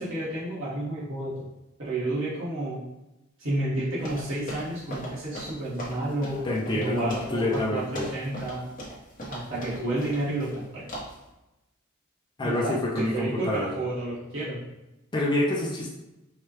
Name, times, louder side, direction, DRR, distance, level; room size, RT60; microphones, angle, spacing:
voice 1, 0.0-1.4 1.8-2.8 3.4-6.4 6.8-8.6 9.3-10.9 12.4-14.6, right 1 dB, 70° right, -9 dB, 1.4 m, -30 dB
sound 1, 4.0-10.6 10.9-11.2, equal, 40° left, 1.1 m, -39 dB
voice 2, 6.4-8.1 12.4-13.7 15.1-15.9, left 1 dB, 20° left, -4 dB, 0.4 m, -27 dB
4.7 x 2.2 x 3.0 m, 0.97 s
head